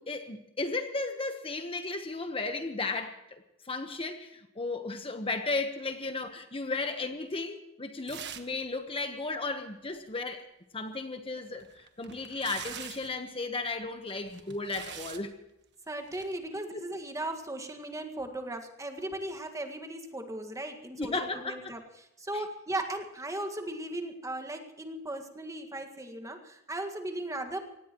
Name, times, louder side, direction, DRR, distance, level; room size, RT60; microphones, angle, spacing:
voice 1, 0.0-10.5 10.7-15.3 16.7-16.8 21.0-21.7 22.3-22.4, left 3 dB, 25° left, 7 dB, 1.2 m, -35 dB
sound 1, 8.1-8.6 8.9-9.0 11.4-13.2 14.1-15.3 16.1-16.3, right 9 dB, 55° right, 1.4 m, -44 dB
voice 2, 15.9-21.8 22.2-27.6, right 1 dB, 15° right, 5 dB, 1.8 m, -37 dB
25.0 x 18.5 x 3.1 m, 0.88 s
head